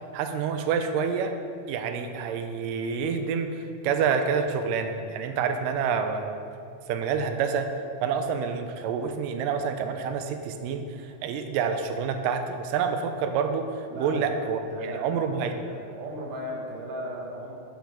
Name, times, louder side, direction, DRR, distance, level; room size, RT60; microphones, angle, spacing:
voice 1, 0.1-1.3 1.7-6.4 6.9-7.7 8.0-15.6, right 6 dB, 90° right, 7 dB, 2.2 m, -28 dB
voice 2, 13.9-14.3 14.6-15.1 15.5-17.6, right 1 dB, 55° right, -2 dB, 1.4 m, -36 dB
10.5 x 5.3 x 5.0 m, 2.4 s
omnidirectional pair, 3.8 m